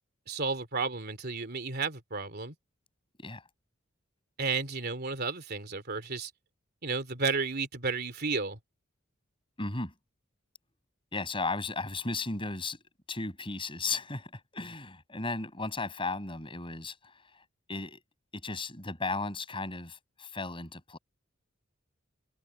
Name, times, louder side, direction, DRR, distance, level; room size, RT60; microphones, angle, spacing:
voice 1, 0.3-2.5 4.4-6.3 6.8-8.6, right 4 dB, 50° right, 3.2 m, -32 dB
voice 2, 9.6-9.9 11.1-12.8 13.1-17.2 17.7-18.0 18.3-21.0, left 3 dB, 25° left, 6.6 m, -35 dB
open air
head